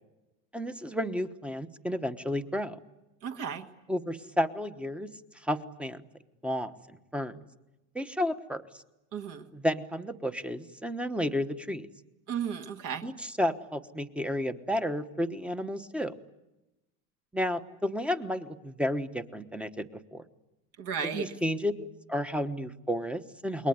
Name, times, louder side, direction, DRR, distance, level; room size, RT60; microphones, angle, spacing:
voice 1, 0.5-2.8 3.9-5.1 5.3-6.0 6.4-7.4 7.9-8.8 9.5-11.9 13.0-16.1 17.3-20.3 21.1-23.7, equal, 5° right, 11 dB, 1.1 m, -32 dB
voice 2, 3.2-3.7 9.1-9.4 12.3-13.1 20.8-21.3, right 7 dB, 50° right, 6 dB, 2.0 m, -34 dB
28.5 x 22.0 x 9.5 m, 0.99 s
cardioid pair, 150°, 39 cm